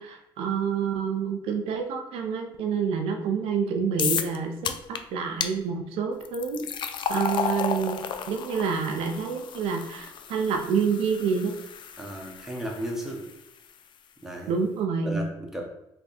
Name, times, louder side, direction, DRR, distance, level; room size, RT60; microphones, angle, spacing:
voice 1, 0.0-6.7 7.1-11.6 14.5-15.2, right 6 dB, 75° right, 4 dB, 0.5 m, -28 dB
sound 1, 4.0-4.4 4.6-5.0 5.4-5.5 6.2-13.3, left 7 dB, 55° left, 0.4 m, -33 dB
voice 2, 12.0-13.3 14.2-14.6 15.0-15.6, right 1 dB, 5° right, 0 dB, 1.0 m, -34 dB
3.4 x 2.2 x 4.1 m, 0.85 s
supercardioid pair, 70°, 10 cm